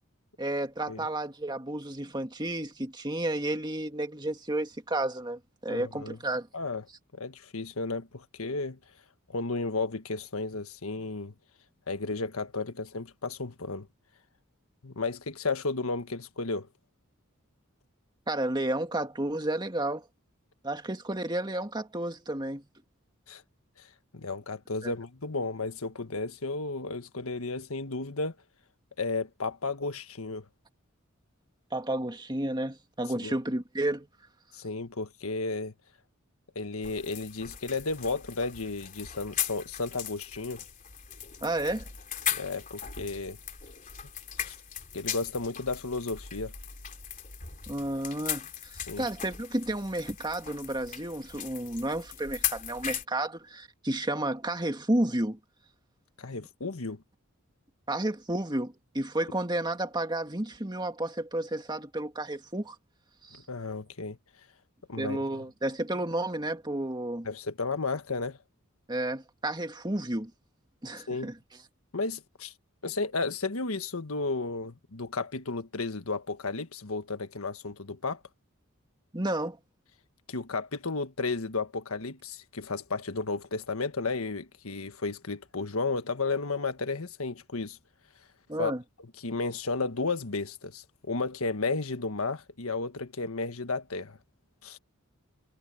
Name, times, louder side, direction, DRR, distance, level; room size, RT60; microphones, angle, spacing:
voice 1, 0.4-6.5 18.3-20.0 20.6-22.6 24.8-24.9 31.7-34.1 41.4-41.8 47.7-55.4 56.3-56.5 57.9-62.8 63.2-63.4 65.0-67.3 68.9-70.3 70.8-71.4 79.1-79.6 88.5-88.8, right 1 dB, 20° right, 2.1 m, -31 dB
voice 2, 5.7-6.2 6.5-6.8 7.1-8.8 9.3-11.3 11.9-13.9 14.8-16.7 23.3-23.4 23.8-23.9 24.1-28.3 29.0-30.4 33.2-33.3 34.5-35.7 36.5-40.6 42.3-43.4 44.4-44.6 44.9-46.5 48.9-49.1 56.2-57.0 63.5-64.2 64.9-65.4 67.2-68.4 71.1-71.3 71.9-72.5 72.8-78.2 80.3-87.8 88.6-88.7 89.2-94.2 94.6-94.8, left 3 dB, 85° left, 1.5 m, -33 dB
sound 1, 36.8-53.0, left 9 dB, 40° left, 3.4 m, -38 dB
head